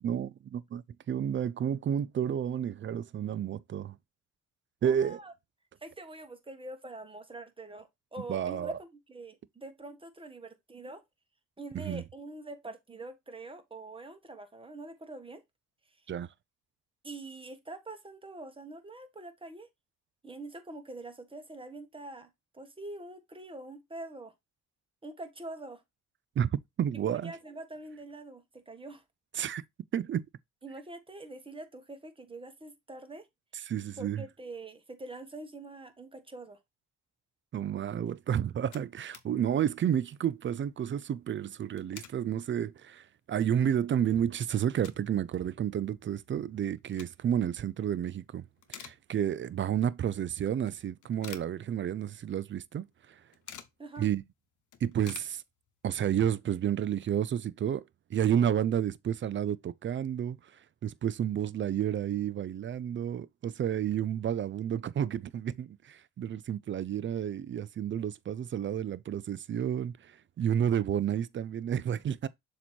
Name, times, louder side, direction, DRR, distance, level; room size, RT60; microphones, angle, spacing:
voice 1, 0.0-4.0 4.8-5.2 8.3-8.7 11.7-12.0 16.1-16.3 26.4-27.3 29.4-29.6 29.9-30.3 33.6-34.2 37.5-53.2 54.0-54.2 54.8-55.4 55.8-57.8 58.1-60.5 60.8-72.3, right 9 dB, 40° right, 0.4 m, -31 dB
voice 2, 4.8-5.3 5.8-11.0 11.6-15.4 17.0-19.7 20.2-24.3 25.0-25.8 27.1-29.0 30.6-33.3 34.0-36.6 53.8-54.1, right 2 dB, 15° right, 1.4 m, -44 dB
sound 1, 38.1-38.2 38.4-39.3 39.7-39.8 40.0-40.3 41.5-42.2 42.7-42.8 43.4-43.5 43.8-45.2 45.5-45.6 46.6-47.4 47.9-48.2 48.5-49.5 49.9-50.0 50.7-52.2 52.4-52.5 52.8-53.8 54.2-54.3 54.5-55.9, left 9 dB, 75° left, 1.0 m, -50 dB
7.0 x 3.0 x 4.4 m
cardioid pair, 90°, 30 cm